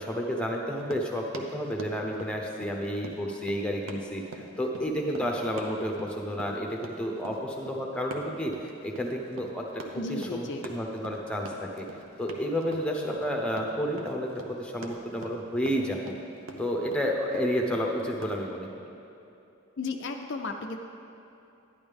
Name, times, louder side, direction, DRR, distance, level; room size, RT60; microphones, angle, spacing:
voice 1, 0.0-11.8 12.2-16.1 16.6-18.7, equal, 5° left, 0 dB, 0.8 m, -31 dB
Run, 0.7-18.4, right 2 dB, 70° right, 0.8 m, -44 dB
voice 2, 9.9-10.7 19.8-20.8, left 3 dB, 55° left, 4 dB, 0.5 m, -34 dB
10.5 x 10.5 x 3.5 m, 2.9 s
head